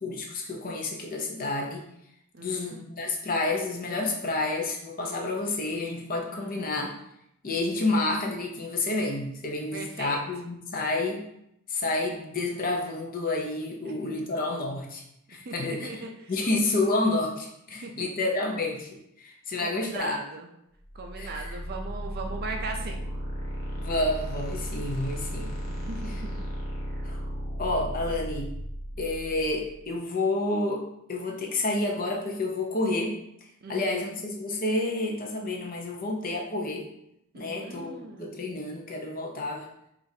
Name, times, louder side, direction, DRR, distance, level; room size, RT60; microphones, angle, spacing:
voice 1, 0.0-1.8 2.4-6.9 7.4-11.3 11.7-15.0 15.3-16.0 16.3-18.9 19.2-20.2 21.2-21.6 23.7-25.5 26.0-26.2 27.0-27.2 27.6-28.5 29.0-33.2 33.7-36.9 37.3-39.7, left 2 dB, 40° left, 0 dB, 0.6 m, -29 dB
voice 2, 2.3-2.8 6.2-6.5 9.7-10.2 15.5-16.3 17.8-18.1 19.6-20.5 20.9-23.1 25.7-26.5 29.2-29.4 33.6-34.1 37.3-38.5, right 3 dB, 45° right, 3 dB, 0.4 m, -39 dB
sound 1, 20.9-29.8, equal, 60° left, 0.9 m, -35 dB
4.9 x 2.5 x 2.7 m, 0.77 s
head